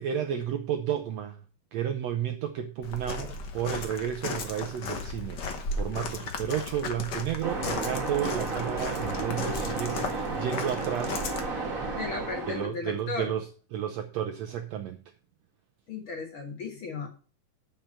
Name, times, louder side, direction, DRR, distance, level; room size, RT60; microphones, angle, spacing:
voice 1, 0.0-1.4 1.7-11.2 11.7-11.8 12.5-15.0, right 9 dB, 80° right, 7 dB, 1.6 m, -32 dB
Walk footsteps, 2.8-11.4, left 4 dB, 90° left, 0.9 m, -36 dB
Waves surf, 7.4-12.7, right 3 dB, 35° right, 1.6 m, -32 dB
voice 2, 11.9-13.3 15.9-17.1, left 4 dB, 55° left, 2 dB, 1.6 m, -35 dB
6.7 x 5.8 x 7.4 m, 0.37 s
omnidirectional pair, 3.7 m